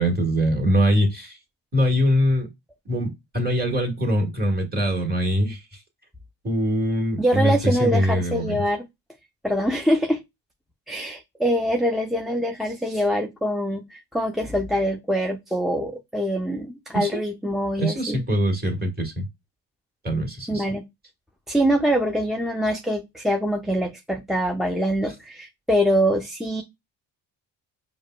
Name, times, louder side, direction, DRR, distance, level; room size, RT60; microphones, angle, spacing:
voice 1, 0.0-1.4 1.7-2.5 2.8-5.6 6.4-8.6 16.9-17.2 17.8-19.3 20.0-20.6, equal, 20° right, 1.5 m, -23 dB
voice 2, 7.2-8.9 9.4-10.2 10.9-18.2 20.5-20.8 21.5-26.6, equal, ahead, 0.4 m, -24 dB
4.7 x 2.2 x 2.3 m
supercardioid pair, 70°, 45 cm